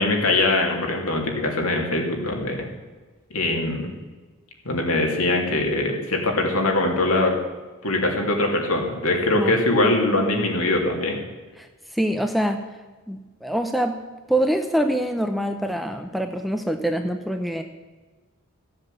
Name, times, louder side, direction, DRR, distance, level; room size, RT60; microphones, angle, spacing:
voice 1, 0.0-2.7 3.3-3.9 4.6-7.3 7.8-11.2, left 2 dB, 75° left, 1 dB, 2.8 m, -22 dB
voice 2, 11.9-12.7 13.1-14.0 14.3-17.6, right 1 dB, ahead, 5 dB, 0.7 m, -25 dB
15.0 x 7.8 x 7.7 m, 1.3 s
head